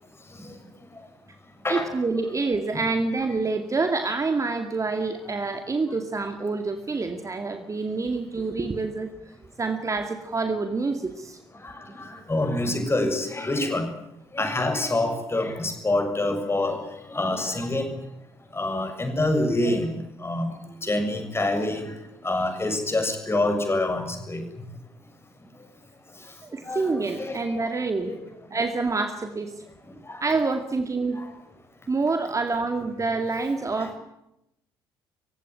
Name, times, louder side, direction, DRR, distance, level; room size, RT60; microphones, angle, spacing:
voice 1, 0.2-1.1 1.5-1.9 11.5-13.9 14.3-18.1 18.5-24.7 25.5-25.7 26.1-28.2 28.5-28.6 29.8-30.3 31.1-31.3 33.7-33.9, left 2 dB, 20° left, 6 dB, 6.8 m, -27 dB
voice 2, 1.7-9.1 9.6-11.4 26.4-28.1 28.5-29.5 30.2-31.2 31.9-34.0, right 3 dB, 25° right, 7 dB, 2.2 m, -27 dB
26.5 x 16.5 x 9.8 m, 0.83 s
figure-of-eight pair, 50°, 13 cm